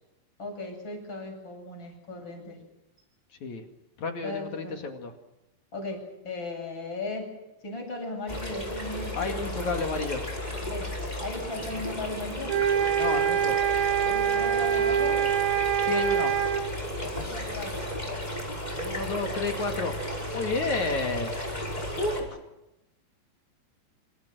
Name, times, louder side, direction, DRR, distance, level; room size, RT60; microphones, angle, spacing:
voice 1, 0.4-2.6 4.2-4.8 5.7-6.0 6.2-7.3 7.6-9.7 10.6-10.9 11.2-12.5 14.0-15.2 17.0-17.8, left 2 dB, 25° left, 2 dB, 8.7 m, -37 dB
voice 2, 4.0-5.1 9.2-10.2 13.0-13.6 15.8-16.3 18.8-20.0 20.3-21.6 22.0-22.4, left 3 dB, 45° left, 5 dB, 3.1 m, -31 dB
sound 1, 8.3-22.2, left 1 dB, 10° left, 5.2 m, -34 dB
sound 2, 12.5-16.7, right 9 dB, 60° right, 3.3 m, -25 dB
27.5 x 27.0 x 6.3 m, 0.90 s
omnidirectional pair, 5.4 m